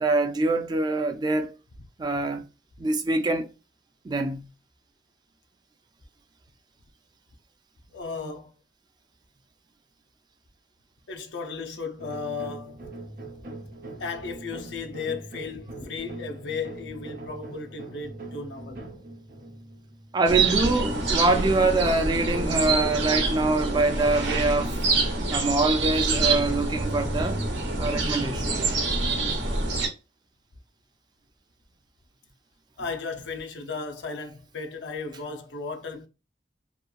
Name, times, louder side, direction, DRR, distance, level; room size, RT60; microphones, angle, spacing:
voice 1, 0.0-1.5 2.0-2.4 2.8-3.5 4.0-4.5 20.1-24.8 25.3-27.4 27.8-28.6, right 2 dB, 25° right, 0.3 m, -24 dB
voice 2, 7.9-8.5 11.1-12.9 14.0-19.0 29.4-29.5 32.8-36.1, left 4 dB, 85° left, 0.5 m, -35 dB
sound 1, 12.0-20.8, right 2 dB, 55° right, 0.7 m, -42 dB
sound 2, 20.3-29.9, right 3 dB, 90° right, 0.8 m, -26 dB
2.8 x 2.3 x 2.3 m
head